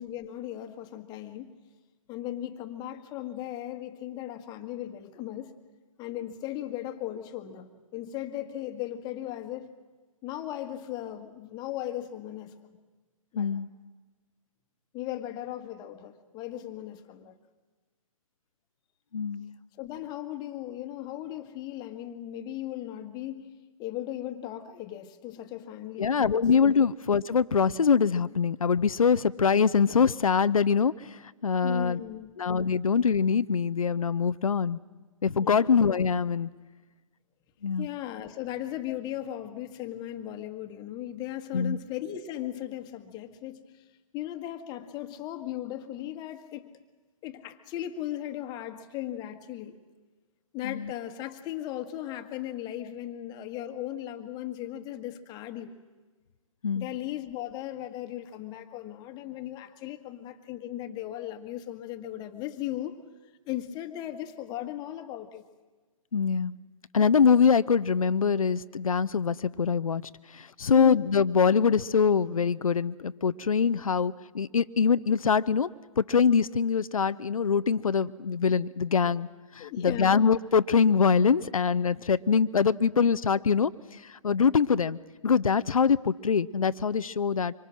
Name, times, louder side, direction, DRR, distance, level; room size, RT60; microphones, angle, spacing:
voice 1, 0.0-1.5 2.1-5.5 6.0-9.7 10.2-12.5 13.3-13.5 14.9-17.4 19.8-23.5 23.8-26.8 31.6-32.3 35.4-35.8 37.8-43.9 44.1-46.7 47.2-49.8 50.5-55.7 56.7-63.0 63.4-65.4 70.7-71.0 79.6-80.2, left 13 dB, 25° left, 7 dB, 1.5 m, -37 dB
voice 2, 13.4-13.7 19.1-19.5 26.0-32.0 32.4-34.8 35.2-36.5 37.6-37.9 41.5-41.8 50.6-50.9 56.6-56.9 66.1-66.5 66.9-70.0 70.3-75.7 76.0-79.3 79.5-85.0 85.2-87.5, left 6 dB, 80° left, 15 dB, 0.6 m, -24 dB
25.0 x 24.5 x 6.2 m, 1.3 s
figure-of-eight pair, 125°, 18 cm